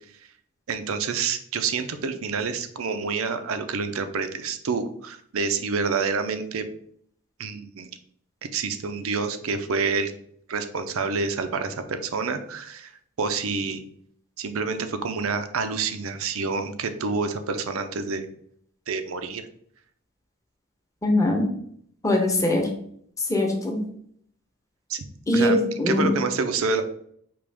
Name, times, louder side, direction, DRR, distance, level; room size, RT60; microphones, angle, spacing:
voice 1, 0.7-6.6 7.4-7.9 8.5-10.1 10.5-12.9 13.2-13.8 14.4-18.3 18.9-19.5 24.9-25.0 25.3-25.6 25.9-26.8, right 4 dB, 70° right, 9 dB, 0.5 m, -28 dB
voice 2, 21.0-21.5 22.0-22.7 23.3-23.8 25.3-26.1, left 1 dB, 15° left, 1 dB, 0.8 m, -21 dB
5.1 x 3.0 x 3.4 m, 0.66 s
head